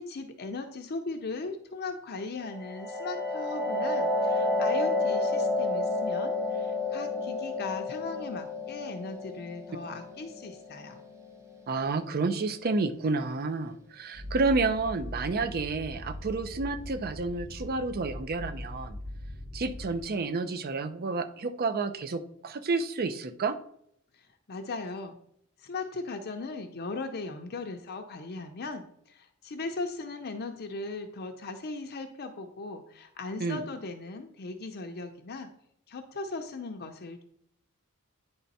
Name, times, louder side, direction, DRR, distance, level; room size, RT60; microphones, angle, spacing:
voice 1, 0.0-11.0 24.1-25.2 25.6-35.5 35.9-37.2, left 3 dB, 50° left, 5 dB, 0.6 m, -38 dB
sound 1, 2.5-12.0, left 2 dB, 15° right, 0.8 m, -30 dB
voice 2, 11.7-19.0 19.5-23.6 33.4-33.6, right 3 dB, 45° right, 10 dB, 0.5 m, -30 dB
sound 2, 14.1-20.0, left 1 dB, 70° right, 1.8 m, -40 dB
9.6 x 3.3 x 4.1 m, 0.70 s
head